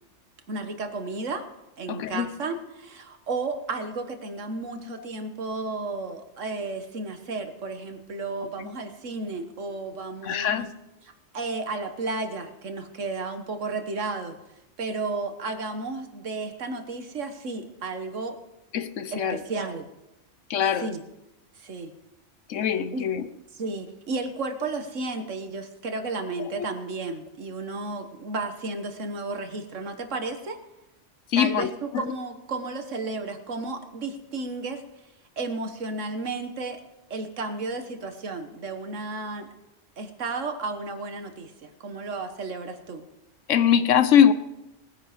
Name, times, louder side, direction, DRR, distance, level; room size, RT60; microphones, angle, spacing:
voice 1, 0.5-1.4 1.8-10.7 11.0-14.4 14.8-18.4 19.1-19.9 20.7-21.0 21.6-21.9 22.9-23.1 23.5-30.6 31.4-34.8 35.4-36.8 37.1-39.5 40.0-43.0, right 3 dB, 80° right, 7 dB, 1.7 m, -33 dB
voice 2, 1.9-2.3 4.9-5.0 8.6-8.7 10.2-10.7 18.7-19.4 20.5-20.9 22.5-23.2 31.3-31.7 43.5-44.3, left 9 dB, 80° left, 13 dB, 1.1 m, -22 dB
19.5 x 9.9 x 5.1 m, 0.94 s
omnidirectional pair, 1.3 m